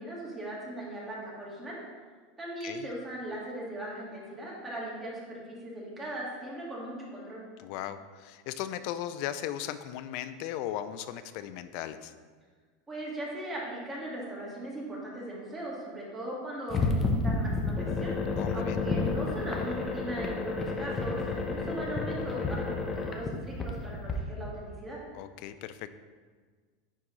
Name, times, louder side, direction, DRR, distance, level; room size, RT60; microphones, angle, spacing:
voice 1, 0.0-1.8 2.4-7.4 12.9-25.0, right 1 dB, 15° right, -5 dB, 1.7 m, -39 dB
voice 2, 7.6-12.1 18.4-18.8 25.1-25.9, left 11 dB, 60° left, 12 dB, 0.3 m, -37 dB
sound 1, 16.7-24.1, left 3 dB, 25° left, 0.7 m, -31 dB
9.8 x 3.5 x 3.1 m, 1.5 s
supercardioid pair, 130°, 0 cm